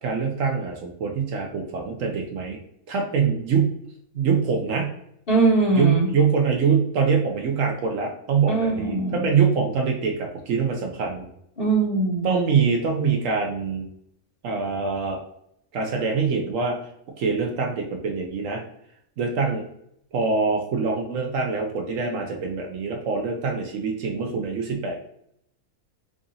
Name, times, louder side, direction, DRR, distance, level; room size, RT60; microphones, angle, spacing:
voice 1, 0.0-2.6 2.9-3.7 4.1-4.9 5.8-11.3 12.2-13.9 14.4-15.2 15.7-16.8 17.2-18.6 19.2-19.6 20.1-25.0, right 5 dB, 70° right, 2 dB, 0.9 m, -24 dB
voice 2, 5.3-6.1 8.5-9.2 11.6-12.3, right 3 dB, 40° left, -6 dB, 1.6 m, -21 dB
4.8 x 2.5 x 2.6 m, 0.73 s
omnidirectional pair, 1.5 m